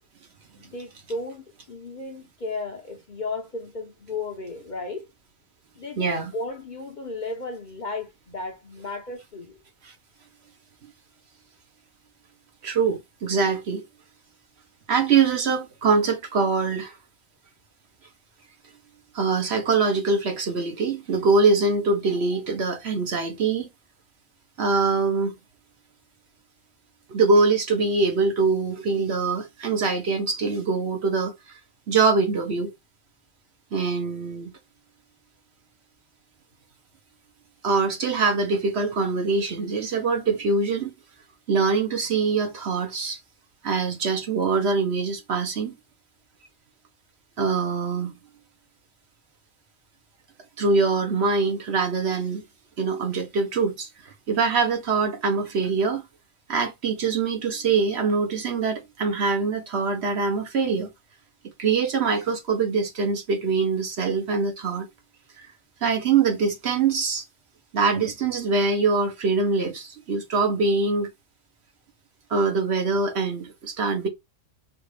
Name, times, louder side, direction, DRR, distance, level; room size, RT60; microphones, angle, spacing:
voice 1, 0.6-5.1 5.8-9.6, left 3 dB, 45° left, 0.7 m, -34 dB
voice 2, 6.0-6.3 12.6-13.8 14.9-16.9 19.1-23.7 24.6-25.3 27.1-31.3 31.9-32.7 33.7-34.5 37.6-40.9 41.5-43.2 43.6-45.7 47.4-48.1 50.6-52.4 52.8-53.9 54.3-56.1 56.5-60.9 61.6-64.9 65.4-65.5 65.8-67.2 67.7-71.1 72.3-74.1, right 4 dB, 60° right, 1.2 m, -23 dB
4.9 x 2.5 x 3.2 m
omnidirectional pair, 1.3 m